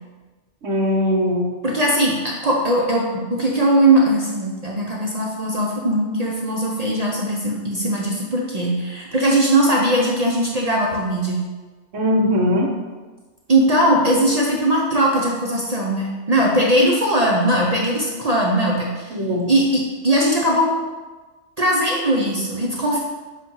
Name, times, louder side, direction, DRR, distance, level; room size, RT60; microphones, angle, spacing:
voice 1, 0.6-1.5 11.9-12.7 19.1-19.5, left 1 dB, 90° right, -2 dB, 1.4 m, -20 dB
voice 2, 1.6-3.0 3.3-11.4 13.5-19.1 19.5-20.7 21.6-23.0, right 1 dB, 40° right, -3 dB, 0.7 m, -19 dB
7.2 x 2.5 x 5.4 m, 1.3 s
omnidirectional pair, 1.2 m